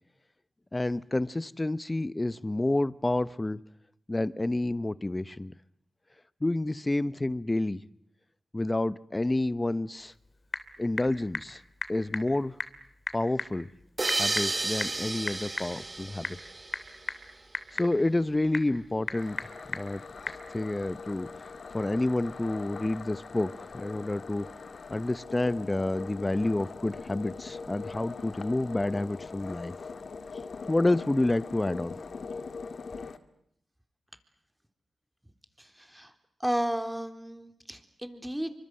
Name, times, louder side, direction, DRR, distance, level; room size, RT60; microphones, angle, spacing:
voice 1, 0.7-3.6 4.1-5.5 6.4-7.8 8.5-10.1 10.8-11.6 11.9-12.6 13.1-13.7 14.2-16.3 17.7-19.4 19.7-20.0 20.5-21.3 21.7-24.5 24.9-29.7 30.7-32.0, left 2 dB, 25° left, 17 dB, 1.0 m, -29 dB
Typing / Telephone, 10.0-20.5, left 3 dB, 50° left, 2.9 m, -40 dB
sound 1, 14.0-17.3, right 2 dB, 35° right, 1.3 m, -32 dB
sound 2, 19.2-33.2, left 4 dB, 70° left, 1.8 m, -42 dB
voice 2, 35.6-36.1 36.4-38.5, equal, 10° right, 8 dB, 3.8 m, -33 dB
27.0 x 25.0 x 7.9 m, 0.74 s
cardioid pair, 50°, 0 cm